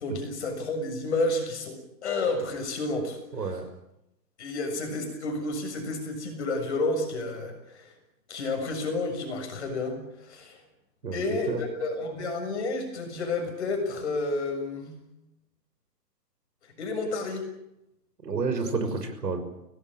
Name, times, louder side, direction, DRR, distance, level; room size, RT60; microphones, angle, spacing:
voice 1, 0.0-1.8 2.0-3.5 4.4-7.9 8.3-10.6 11.1-15.0 16.8-17.4 18.6-18.7, left 2 dB, 40° left, 5 dB, 7.0 m, -30 dB
voice 2, 3.3-3.6 11.0-11.2 11.5-11.6 18.2-19.4, right 4 dB, 75° right, 8 dB, 6.1 m, -29 dB
24.0 x 18.5 x 8.9 m, 0.85 s
hypercardioid pair, 175°, 50 cm